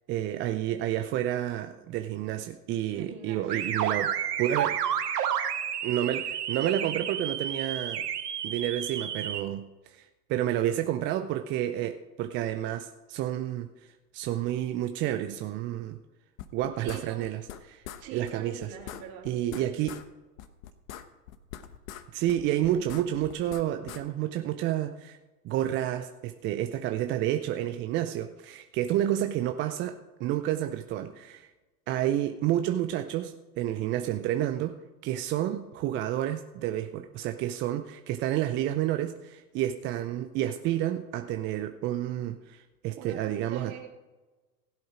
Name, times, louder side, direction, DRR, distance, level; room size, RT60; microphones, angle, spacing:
voice 1, 0.1-4.8 5.8-8.0 8.4-10.0 10.3-13.7 14.1-16.0 16.5-17.4 17.7-17.8 18.1-18.7 19.2-20.0 22.1-25.2 25.4-31.5 31.9-34.8 35.0-43.7, right 12 dB, 25° right, 7 dB, 0.5 m, -30 dB
voice 2, 2.9-3.7 16.8-17.3 18.0-19.3 43.0-43.9, right 8 dB, 45° right, 1 dB, 3.1 m, -43 dB
sound 1, 3.5-9.4, right 9 dB, 75° right, 1.3 m, -31 dB
sound 2, 16.4-17.6 17.8-18.0 18.3-18.4 18.6-20.1 20.4-22.0 22.3-24.0, left 11 dB, 55° left, 1.1 m, -42 dB
16.5 x 7.8 x 5.0 m, 1.2 s
hypercardioid pair, 95°, 47 cm